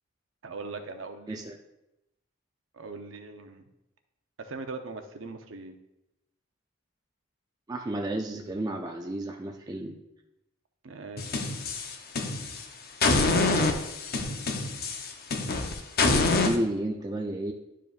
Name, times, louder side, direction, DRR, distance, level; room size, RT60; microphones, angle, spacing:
voice 1, 0.4-1.5 2.7-3.6 4.4-5.8 10.8-11.4 13.2-13.7, right 4 dB, 70° right, 6 dB, 0.7 m, -40 dB
voice 2, 7.7-10.0 16.1-17.5, right 1 dB, 20° right, 2 dB, 0.4 m, -32 dB
sound 1, 11.2-12.6 13.0-16.6, left 3 dB, 50° left, 0.7 m, -26 dB
11.0 x 5.0 x 2.4 m, 0.90 s
head